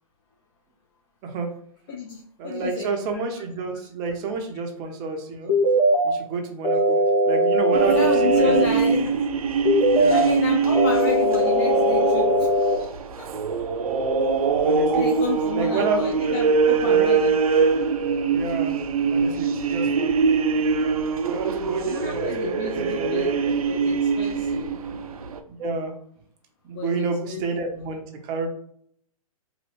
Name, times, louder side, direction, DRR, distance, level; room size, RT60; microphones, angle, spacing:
voice 1, 1.9-2.9 7.9-9.2 10.1-12.5 13.2-13.3 14.9-17.4 21.9-24.8 26.7-27.4, left 5 dB, 35° left, 0 dB, 0.5 m, -31 dB
voice 2, 2.4-5.5 6.0-7.0 7.3-8.1 8.4-8.8 9.9-10.3 14.6-15.1 15.5-16.1 16.5-16.6 16.8-17.1 18.3-18.8 19.1-20.2 21.2-23.3 24.9-25.0 25.5-25.9 26.7-28.5, right 4 dB, 20° right, 3 dB, 0.6 m, -29 dB
sound 1, 5.5-6.1 6.6-8.6 9.6-10.3 10.7-12.7, equal, 80° left, 1.2 m, -20 dB
sound 2, 7.7-25.4, right 5 dB, 70° right, 0.5 m, -23 dB
3.0 x 2.6 x 3.0 m, 0.64 s
hypercardioid pair, 135°, 19 cm